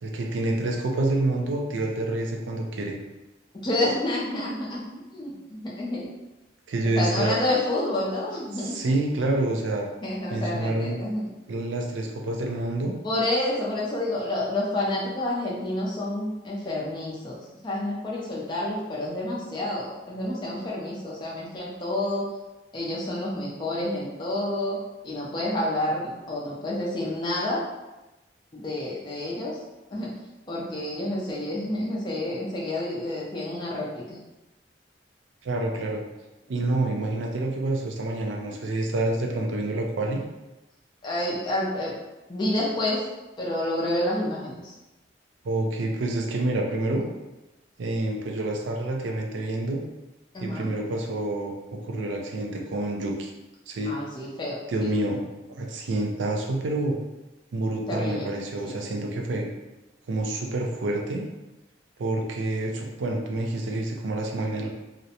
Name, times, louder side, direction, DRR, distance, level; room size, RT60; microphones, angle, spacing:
voice 1, 0.0-3.0 6.7-7.4 8.5-9.9 10.3-11.0 11.5-12.9 35.4-36.0 36.5-40.2 45.4-47.1 47.8-49.8 50.4-53.3 53.7-53.9 54.7-55.2 55.5-57.0 57.5-59.5 60.1-61.2 62.0-64.7, right 2 dB, 80° right, 1 dB, 0.4 m, -28 dB
voice 2, 3.6-4.8 5.1-6.0 7.0-8.8 10.0-11.2 13.0-17.4 17.6-22.3 22.7-24.8 25.0-27.6 28.5-29.6 29.9-30.1 30.5-34.2 41.0-41.9 42.3-43.0 43.4-44.7 50.3-50.7 53.8-54.6 57.9-58.3 58.6-58.7, left 1 dB, 25° left, -5 dB, 0.4 m, -29 dB
2.5 x 2.0 x 2.8 m, 1.0 s
head